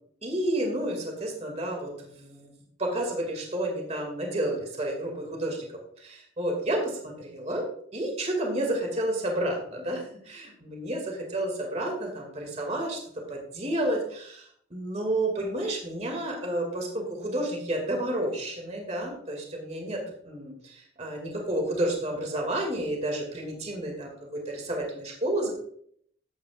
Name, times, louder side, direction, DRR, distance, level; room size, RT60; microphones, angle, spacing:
voice 1, 0.2-2.5 2.8-5.7 6.0-6.8 7.3-7.7 7.9-13.0 13.3-14.5 14.7-25.5, right 1 dB, 35° right, 1 dB, 2.2 m, -30 dB
13.5 x 8.9 x 2.4 m, 0.65 s
head